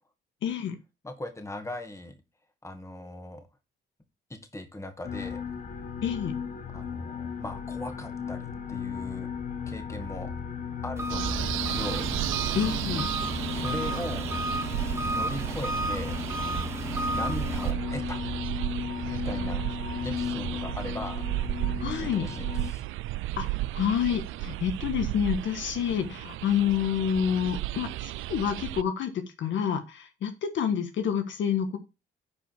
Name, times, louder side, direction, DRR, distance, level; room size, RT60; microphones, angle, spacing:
voice 1, 0.4-0.8 6.0-6.3 12.5-13.1 21.8-22.3 23.4-23.5 23.7-31.8, left 8 dB, 70° left, 7 dB, 1.4 m, -28 dB
voice 2, 1.0-2.2 2.6-3.5 4.3-5.4 6.7-9.3 9.7-10.3 10.8-12.1 13.5-14.3 15.1-16.1 17.1-18.2 19.1-19.6 20.0-21.2 21.8-22.8, left 1 dB, 15° left, 6 dB, 2.1 m, -39 dB
sound 1, 5.0-22.7, left 6 dB, 40° left, 1.2 m, -36 dB
Engine, 11.0-17.7, right 2 dB, 15° right, 2.3 m, -33 dB
sound 2, 11.1-28.8, right 17 dB, 85° right, 0.4 m, -34 dB
10.0 x 4.9 x 4.7 m, 0.27 s
cardioid pair, 90°, 20 cm